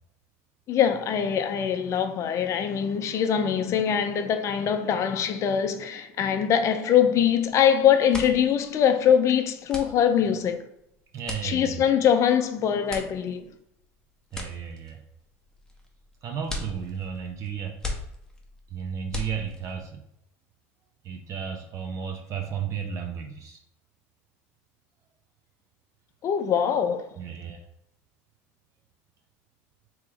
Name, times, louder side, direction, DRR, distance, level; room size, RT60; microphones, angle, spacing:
voice 1, 0.7-10.6 11.4-13.4 26.2-27.1, left 8 dB, 40° left, 0.5 m, -23 dB
sound 1, 7.5-7.7 7.9-19.9, left 2 dB, 10° left, 0.8 m, -39 dB
voice 2, 11.1-12.0 14.3-15.0 16.2-17.8 18.7-20.0 21.0-23.6 27.2-27.6, right 7 dB, 45° right, 0.6 m, -33 dB
3.1 x 3.0 x 3.6 m
supercardioid pair, 100°, 7 cm